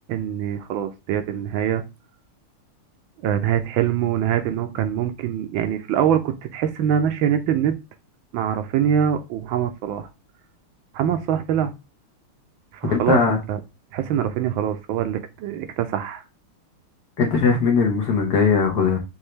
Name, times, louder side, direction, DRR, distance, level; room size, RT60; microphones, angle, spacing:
voice 1, 0.1-1.8 3.2-7.8 8.3-10.1 10.9-11.7 12.7-13.6 13.9-16.2, right 9 dB, 75° right, 1.3 m, -24 dB
voice 2, 12.9-13.4 17.2-19.0, left 5 dB, 55° left, 1.5 m, -19 dB
5.5 x 2.7 x 3.2 m
omnidirectional pair, 2.3 m